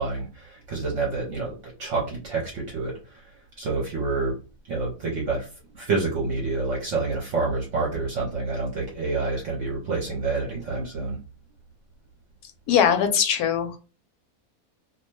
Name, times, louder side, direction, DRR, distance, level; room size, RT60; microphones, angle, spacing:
voice 1, 0.0-4.4 4.7-5.5 5.7-11.2, right 3 dB, 60° right, -3 dB, 1.0 m, -28 dB
voice 2, 12.7-13.8, left 8 dB, 90° left, 7 dB, 1.1 m, -21 dB
2.6 x 2.2 x 3.1 m, 0.34 s
omnidirectional pair, 1.6 m